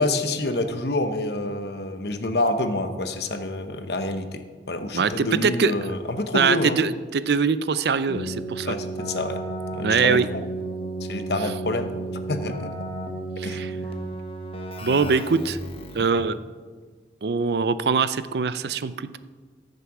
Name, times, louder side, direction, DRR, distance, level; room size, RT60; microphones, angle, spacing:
voice 1, 0.0-6.8 8.6-9.4 9.7-10.2 11.0-12.0 12.3-12.7 13.4-13.7 14.8-15.1 16.0-16.2, left 2 dB, 70° left, 8 dB, 1.0 m, -27 dB
voice 2, 4.9-5.7 6.3-8.7 9.8-10.3 13.4-13.7 14.8-15.6 15.9-16.4 17.2-19.2, right 5 dB, 70° right, 14 dB, 0.5 m, -23 dB
Keyboard (musical), 8.1-16.2, right 2 dB, 30° left, 1.1 m, -33 dB
14.0 x 6.7 x 6.0 m, 1.5 s
head